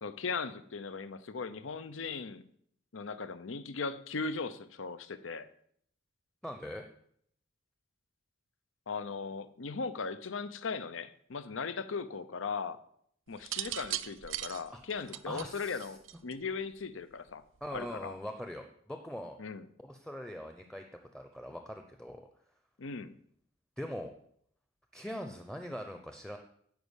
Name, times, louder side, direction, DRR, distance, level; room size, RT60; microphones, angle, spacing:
voice 1, 0.0-2.5 2.9-5.5 8.9-12.8 13.3-17.4 17.7-18.1 19.4-19.7 22.8-23.1, left 4 dB, 85° left, 13 dB, 0.7 m, -38 dB
voice 2, 6.4-6.9 14.7-14.8 15.3-15.9 17.6-19.4 19.8-20.8 21.1-22.2 23.8-24.1 24.9-26.4, equal, 5° left, 5 dB, 0.6 m, -42 dB
sound 1, 13.4-16.5 17.6-18.0, right 14 dB, 85° right, 0.5 m, -38 dB
10.5 x 4.8 x 8.2 m, 0.66 s
head